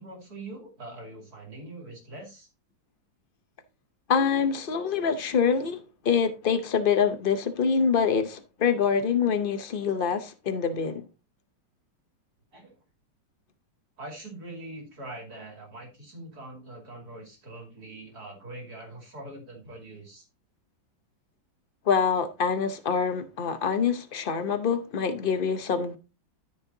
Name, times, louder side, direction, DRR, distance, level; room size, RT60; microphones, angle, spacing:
voice 1, 0.0-2.5 12.5-12.8 14.0-20.3, right 2 dB, 50° right, 3.1 m, -43 dB
voice 2, 4.1-11.0 21.9-26.0, left 6 dB, 90° left, 0.4 m, -25 dB
13.0 x 5.5 x 2.7 m
omnidirectional pair, 2.1 m